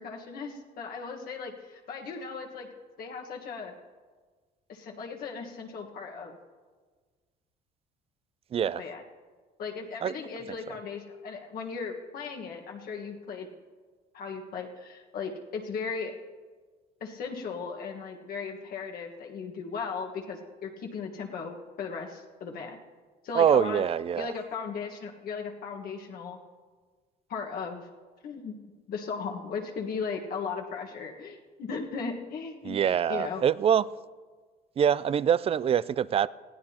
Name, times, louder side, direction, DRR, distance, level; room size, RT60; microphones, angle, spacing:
voice 1, 0.0-2.7 3.0-3.7 4.7-6.4 8.8-9.0 9.6-13.5 14.1-16.2 17.0-22.8 23.2-23.9 24.1-26.4 27.3-27.9 28.2-28.5 28.9-32.8 33.1-33.4, left 5 dB, 60° left, 1 dB, 1.5 m, -37 dB
voice 2, 23.3-24.3 32.6-33.8 34.8-36.3, right 9 dB, 35° right, 19 dB, 0.4 m, -24 dB
20.5 x 15.0 x 2.9 m, 1.5 s
cardioid pair, 110°, 17 cm